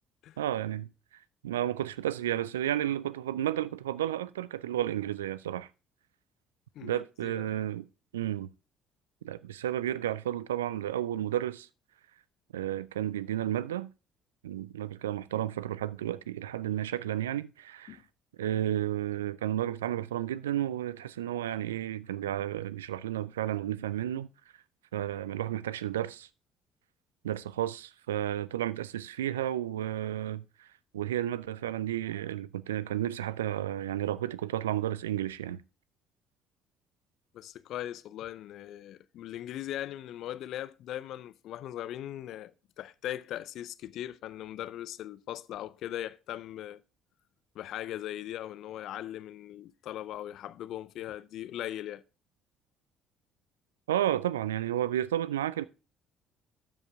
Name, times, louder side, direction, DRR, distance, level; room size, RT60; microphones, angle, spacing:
voice 1, 0.4-0.9 1.4-5.7 6.8-7.9 8.1-8.5 9.2-11.7 12.5-13.9 14.4-18.0 18.4-24.3 24.9-26.3 27.2-30.7 30.9-35.6 53.9-55.6, right 12 dB, 85° right, 0.4 m, -32 dB
voice 2, 6.8-7.5 17.9-18.0 37.3-42.5 42.8-46.8 47.5-52.0, left 12 dB, 60° left, 0.5 m, -39 dB
12.5 x 5.3 x 3.5 m
hypercardioid pair, 55°, 0 cm